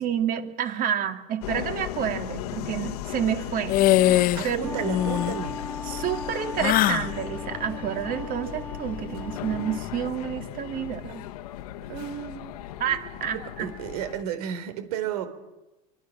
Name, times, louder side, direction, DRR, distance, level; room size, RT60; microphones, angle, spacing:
voice 1, 0.0-3.8 4.4-4.6 5.9-11.2 12.8-13.7, right 9 dB, 45° right, 7 dB, 2.7 m, -29 dB
Subway metro underground, 1.4-14.2, left 12 dB, 90° left, 1.4 m, -36 dB
sound 1, 3.7-4.5 4.8-5.4 6.6-7.1, left 14 dB, 50° left, 0.9 m, -21 dB
voice 2, 4.4-5.6 11.9-12.5 13.6-15.3, right 9 dB, 80° right, 10 dB, 3.8 m, -32 dB
Wind instrument woodwind instrument, 4.5-9.8, left 3 dB, 10° left, 2.0 m, -39 dB
25.0 x 24.5 x 6.4 m, 1.0 s
supercardioid pair, 115°, 19 cm